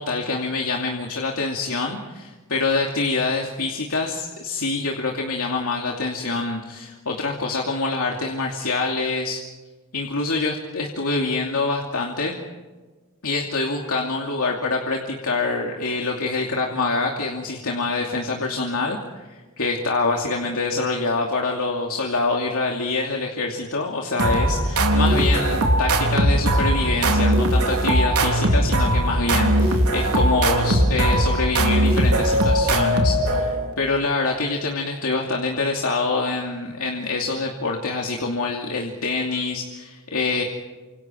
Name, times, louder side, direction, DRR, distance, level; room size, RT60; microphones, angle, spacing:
voice 1, 0.0-9.4 9.9-12.4 13.2-40.4, left 3 dB, 70° left, 0 dB, 2.7 m, -25 dB
sound 1, 24.2-33.7, right 1 dB, 85° right, 3.6 m, -19 dB
29.5 x 27.0 x 4.6 m, 1.3 s
head